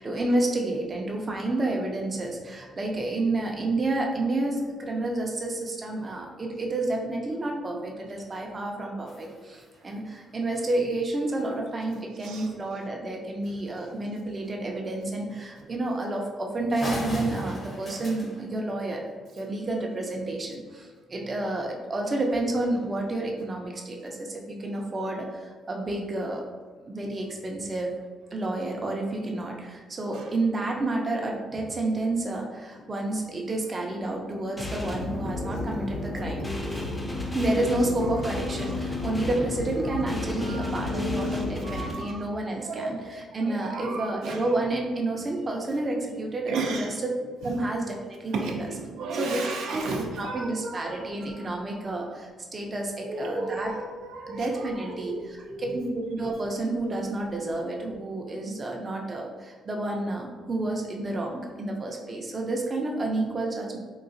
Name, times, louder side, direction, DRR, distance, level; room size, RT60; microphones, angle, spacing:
voice 1, 0.0-19.0 19.3-26.4 26.8-27.9 28.3-36.5 37.3-47.1 47.4-48.7 49.1-49.4 49.7-49.8 50.2-53.7 54.3-63.8, right 2 dB, 30° right, 0 dB, 0.5 m, -30 dB
sound 1, 9.1-11.0 12.5-12.6 12.9-13.0 13.5-13.6 14.5-14.7 15.4-15.6 16.0-16.1 16.4-16.5 16.7-19.4, left 1 dB, 40° left, 0.9 m, -38 dB
sound 2, 32.2-41.5, left 5 dB, 70° left, 0.4 m, -39 dB
sound 3, 34.6-41.9, left 2 dB, 10° left, 0.6 m, -33 dB
voice 2, 35.3-35.8 36.4-36.9 40.1-42.2 42.6-43.1 43.6-44.4 46.5-46.9 48.3-51.0 51.4-51.5 53.1-54.5 54.9-55.2 55.5-55.6, right 3 dB, 80° right, 0 dB, 0.5 m, -34 dB
3.7 x 2.4 x 2.6 m, 1.4 s
cardioid pair, 90°, 0 cm